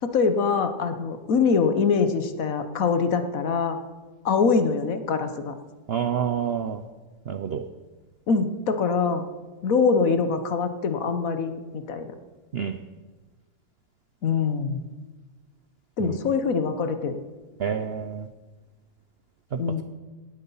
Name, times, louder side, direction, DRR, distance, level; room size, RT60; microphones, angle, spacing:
voice 1, 0.0-3.8 4.2-5.5 8.3-9.3 9.6-12.1 14.2-14.9 16.0-17.2 19.6-19.8, left 5 dB, 60° left, 8 dB, 1.3 m, -24 dB
voice 2, 5.9-6.8 7.3-7.6 12.5-12.8 16.0-16.2 17.6-18.3 19.5-19.8, right 8 dB, 65° right, 9 dB, 0.6 m, -28 dB
18.0 x 8.3 x 5.5 m, 1.3 s
omnidirectional pair, 1.8 m